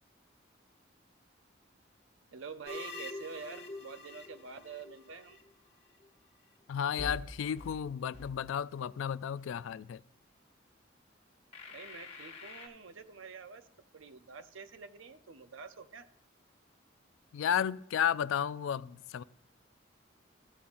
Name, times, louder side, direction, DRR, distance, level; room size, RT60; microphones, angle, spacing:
voice 1, 2.3-5.4 11.7-13.6 13.9-16.1, right 5 dB, 90° right, 0.7 m, -47 dB
sound 1, 2.6-5.5 7.0-7.1 7.6-7.7 8.1-8.3 8.7-8.8 11.5-12.7, left 2 dB, 30° left, 1.0 m, -45 dB
voice 2, 6.7-10.0 17.3-19.2, left 8 dB, 85° left, 0.3 m, -33 dB
13.5 x 7.0 x 2.5 m
head